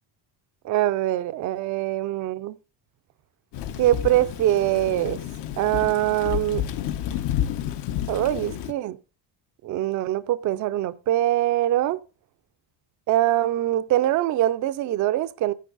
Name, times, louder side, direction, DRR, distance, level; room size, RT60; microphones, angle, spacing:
voice 1, 0.6-2.6 3.8-5.2 5.6-6.6 8.1-9.0 9.6-12.0 13.1-15.5, right 14 dB, 45° right, 0.5 m, -23 dB
Thunder / Rain, 3.5-8.7, left 10 dB, 70° left, 1.2 m, -30 dB
14.5 x 10.0 x 4.0 m
cardioid pair, 170°, 44 cm